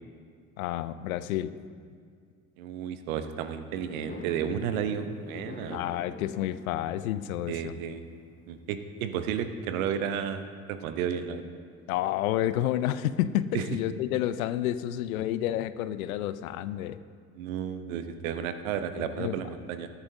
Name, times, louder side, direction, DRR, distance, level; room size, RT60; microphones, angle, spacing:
voice 1, 0.6-1.5 5.7-7.7 11.9-17.0 19.0-19.4, left 12 dB, 80° left, 15 dB, 0.5 m, -30 dB
voice 2, 2.6-5.8 7.5-8.1 8.5-10.4 10.7-11.5 13.5-13.7 17.3-19.9, right 8 dB, 75° right, 9 dB, 0.9 m, -32 dB
Fireworks, 3.7-9.0, left 2 dB, 20° left, 2.0 m, -45 dB
19.0 x 11.0 x 2.7 m, 2.1 s
hypercardioid pair, 55°, 41 cm